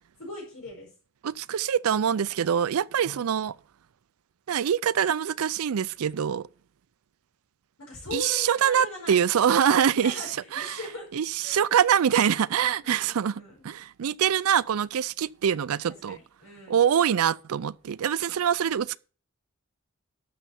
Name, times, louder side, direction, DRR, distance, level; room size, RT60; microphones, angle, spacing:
voice 1, 0.2-0.9 7.8-9.2 9.7-9.8 10.0-11.1 11.4-11.6 12.8-13.6 16.1-16.8, left 1 dB, 75° left, 4.9 m, -40 dB
voice 2, 1.2-3.6 4.5-6.5 8.1-10.2 10.5-10.8 11.1-16.2 16.7-19.0, right 8 dB, 75° right, 0.4 m, -24 dB
12.0 x 6.8 x 4.4 m
head